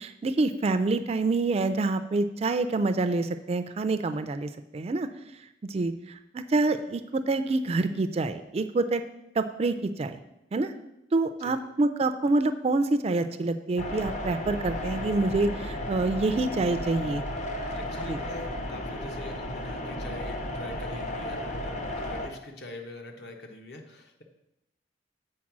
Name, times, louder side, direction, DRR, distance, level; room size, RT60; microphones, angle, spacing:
voice 1, 0.0-5.1 5.7-9.0 9.3-10.2 10.5-10.7 11.1-17.2 18.1-18.2, right 3 dB, 35° right, 10 dB, 0.3 m, -27 dB
sound 1, 13.8-22.3, left 1 dB, 40° left, 0.7 m, -34 dB
voice 2, 17.7-24.2, left 1 dB, 60° left, 3 dB, 1.0 m, -44 dB
7.3 x 4.6 x 5.9 m, 0.88 s
head